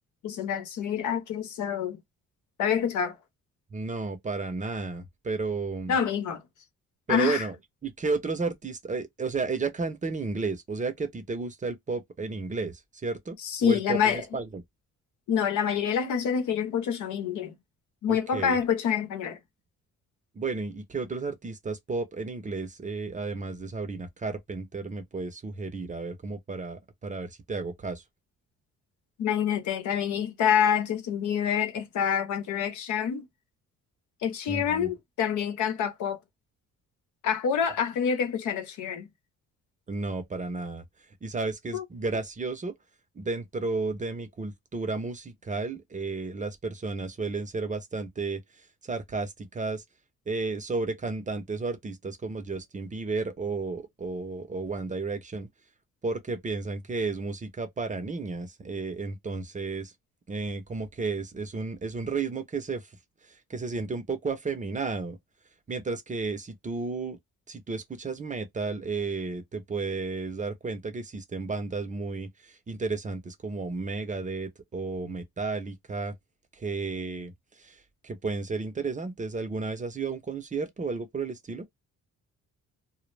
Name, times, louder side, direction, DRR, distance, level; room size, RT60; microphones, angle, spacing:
voice 1, 0.2-2.0 2.6-3.2 5.9-6.4 7.1-7.5 13.4-14.2 15.3-17.6 18.0-19.4 29.2-33.3 34.2-36.2 37.2-39.1 41.7-41.8, left 8 dB, 75° left, 0.8 m, -27 dB
voice 2, 3.7-5.9 7.1-7.5 7.8-13.4 13.6-14.6 18.1-18.6 20.3-28.0 34.5-34.9 39.9-40.8 41.2-42.7 43.2-48.4 48.8-49.8 50.3-55.5 56.0-59.9 60.3-62.8 63.3-65.2 65.7-67.2 67.5-76.1 76.5-77.3 77.6-81.6, right 3 dB, 25° right, 0.6 m, -33 dB
2.1 x 2.0 x 3.1 m
cardioid pair, 90°, 30 cm